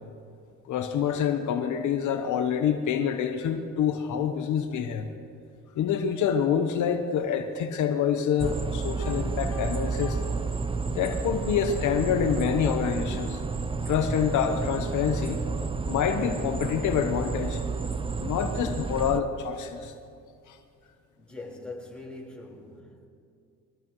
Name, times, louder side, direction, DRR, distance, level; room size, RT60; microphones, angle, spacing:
voice 1, 0.7-5.1 5.8-10.2 10.9-13.4 13.8-15.4 15.9-17.6 18.2-19.9 20.5-20.6, left 8 dB, 75° left, 6 dB, 1.0 m, -27 dB
sound 1, 8.4-19.2, right 4 dB, 20° right, 0.6 m, -31 dB
Piano, 9.0-11.4, left 4 dB, 50° left, 1.1 m, -46 dB
voice 2, 21.2-23.1, left 2 dB, 5° left, -3 dB, 4.3 m, -42 dB
22.5 x 18.5 x 3.1 m, 2.4 s
cardioid pair, 90°, 30 cm